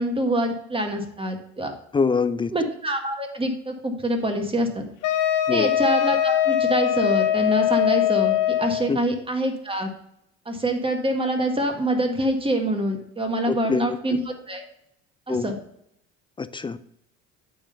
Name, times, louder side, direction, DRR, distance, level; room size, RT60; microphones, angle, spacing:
voice 1, 0.0-1.7 2.5-4.8 5.5-9.9 10.5-14.2 14.5-14.6 15.3-15.6, right 1 dB, 15° right, 4 dB, 1.7 m, -25 dB
voice 2, 1.9-2.5 5.5-5.7 8.9-9.0 13.5-14.0 15.3-15.5 16.4-16.9, left 5 dB, 15° left, 13 dB, 0.3 m, -24 dB
Wind instrument woodwind instrument, 5.0-8.9, left 11 dB, 65° left, 0.9 m, -22 dB
8.6 x 3.9 x 5.6 m, 0.75 s
hypercardioid pair, 75°, 34 cm